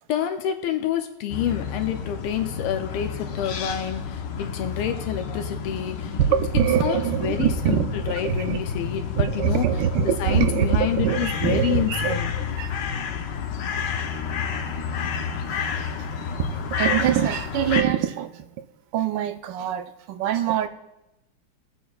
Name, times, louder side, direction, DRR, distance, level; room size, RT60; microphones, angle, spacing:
voice 1, 0.1-6.1 6.8-9.6 10.2-12.3, left 9 dB, 85° left, 5 dB, 1.6 m, -28 dB
sound 1, 1.3-17.8, left 7 dB, 65° left, 1.3 m, -30 dB
voice 2, 6.2-8.6 9.2-12.7 14.0-14.1 15.5-15.7 16.5-18.5 18.9-20.7, right 10 dB, 70° right, 8 dB, 1.2 m, -24 dB
21.0 x 7.8 x 2.3 m, 0.95 s
omnidirectional pair, 2.4 m